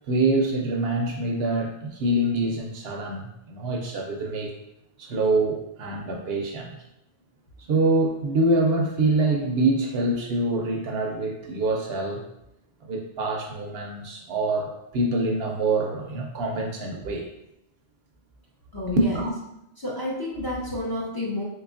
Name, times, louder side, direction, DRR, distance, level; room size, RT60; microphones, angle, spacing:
voice 1, 0.1-4.5 5.0-6.8 7.6-12.2 12.8-17.3 19.0-19.3, right 2 dB, 65° right, 2 dB, 0.7 m, -25 dB
voice 2, 18.7-19.2 19.8-21.4, left 1 dB, 25° left, -5 dB, 0.6 m, -30 dB
3.8 x 2.9 x 2.4 m, 0.84 s
omnidirectional pair, 1.2 m